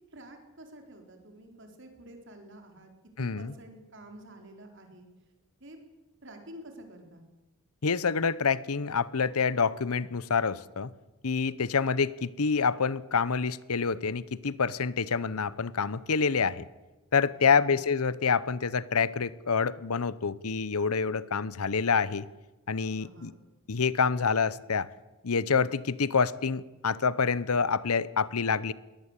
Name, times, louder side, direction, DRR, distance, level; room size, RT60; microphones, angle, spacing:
voice 1, 0.1-2.9 3.2-5.1 5.6-5.8 6.2-7.3 17.3-17.8 23.0-23.4, right 1 dB, 55° right, 4.5 m, -49 dB
voice 2, 3.2-3.5 7.8-10.9 11.2-16.6 17.1-22.3 22.7-23.3 23.7-24.9 25.2-28.7, left 5 dB, 80° left, 0.9 m, -27 dB
22.5 x 18.5 x 8.4 m
head